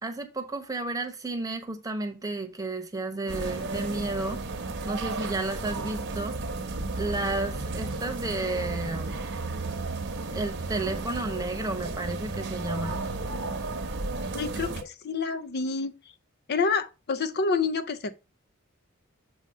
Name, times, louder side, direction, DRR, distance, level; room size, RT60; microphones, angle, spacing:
voice 1, 0.0-4.4 4.8-6.3 7.0-9.2 10.3-13.1, right 2 dB, 15° right, 0.9 m, -32 dB
sound 1, 3.3-14.8, right 3 dB, 55° right, 0.9 m, -33 dB
voice 2, 14.3-15.9 16.5-18.2, left 4 dB, 50° left, 0.5 m, -28 dB
7.0 x 2.8 x 5.4 m
head